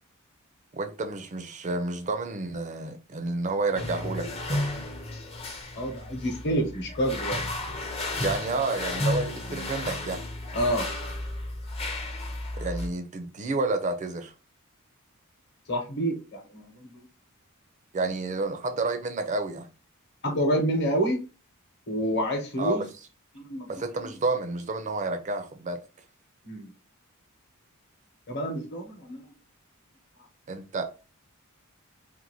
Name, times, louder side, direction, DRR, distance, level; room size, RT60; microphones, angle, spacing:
voice 1, 0.7-4.7 8.1-10.2 12.6-14.3 17.9-19.7 22.6-22.9 23.7-25.8 30.5-30.9, right 3 dB, 35° right, 0.4 m, -30 dB
sound 1, 3.7-12.9, left 2 dB, 30° left, 0.5 m, -33 dB
voice 2, 5.8-7.4 10.5-10.9 15.7-17.1 20.2-21.2 21.9-22.8 23.3-23.7 26.4-26.7 28.3-29.3, right 1 dB, 50° left, 0.9 m, -28 dB
2.6 x 2.5 x 2.9 m
head